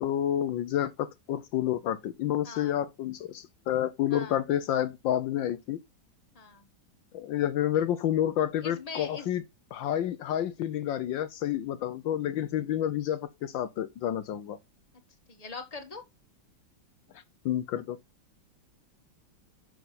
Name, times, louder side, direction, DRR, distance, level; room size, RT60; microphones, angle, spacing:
voice 1, 0.0-5.8 7.1-9.4 9.7-14.6 17.4-18.0, left 11 dB, 75° left, 1.4 m, -29 dB
voice 2, 2.4-2.8 4.1-4.4 6.4-6.7 8.6-9.3 15.3-16.0, left 4 dB, 20° left, 1.6 m, -41 dB
9.4 x 6.6 x 4.1 m
omnidirectional pair, 2.1 m